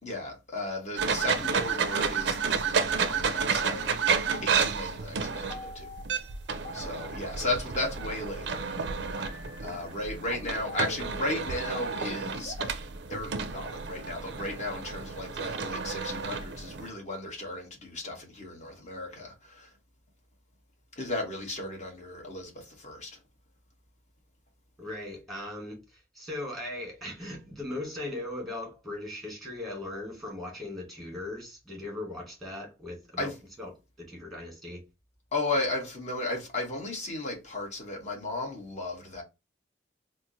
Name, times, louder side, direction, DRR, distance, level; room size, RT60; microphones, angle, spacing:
voice 1, 0.0-5.9 6.7-8.8 9.6-12.8 13.1-19.7 21.0-23.2 33.2-33.4 35.3-39.2, left 2 dB, 40° left, 1.1 m, -35 dB
sound 1, 1.0-16.9, right 5 dB, 65° right, 0.4 m, -31 dB
sound 2, 4.3-7.8 8.8-12.7, left 1 dB, 60° left, 0.4 m, -45 dB
voice 2, 24.8-33.3 33.6-33.7 34.0-34.8, left 1 dB, ahead, 1.4 m, -38 dB
4.2 x 2.0 x 2.6 m
head